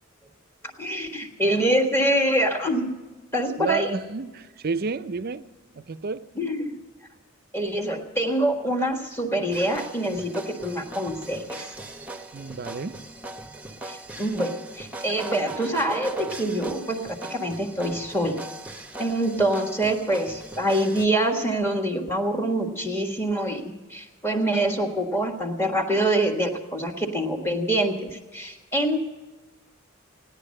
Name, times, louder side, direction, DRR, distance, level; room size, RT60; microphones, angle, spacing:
voice 1, 0.8-2.9 3.3-4.0 6.4-6.8 7.5-11.7 13.8-18.4 19.0-29.1, right 1 dB, 10° left, 1.5 m, -25 dB
voice 2, 3.6-5.5 5.7-6.3 12.3-13.0, right 4 dB, 45° right, 0.5 m, -30 dB
sound 1, 9.5-21.1, right 2 dB, 5° right, 0.9 m, -39 dB
16.5 x 10.5 x 6.5 m
head